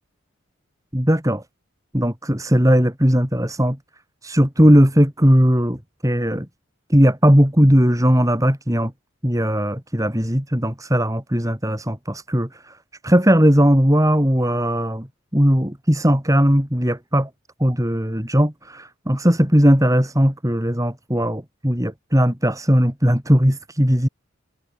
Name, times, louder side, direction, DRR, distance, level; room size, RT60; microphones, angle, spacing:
voice 1, 0.9-1.4 1.9-3.8 4.2-5.8 6.0-6.5 6.9-8.9 9.2-12.5 13.0-15.1 15.3-17.3 17.6-24.1, equal, 15° right, 4.3 m, -18 dB
open air
head